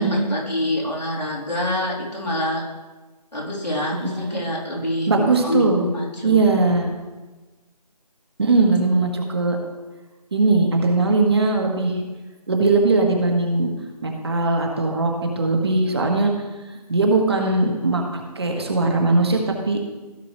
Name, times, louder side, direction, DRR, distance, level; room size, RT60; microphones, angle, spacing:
voice 1, 0.0-2.7 3.3-6.4, left 1 dB, 85° left, -4 dB, 3.5 m, -26 dB
voice 2, 3.9-4.4 5.1-5.8 6.2-6.9 8.4-9.6 10.3-12.0 12.5-13.7 14.0-16.3 16.9-19.8, right 3 dB, 40° right, 2 dB, 1.5 m, -20 dB
15.5 x 6.1 x 3.2 m, 1.2 s
figure-of-eight pair, 160°, 21 cm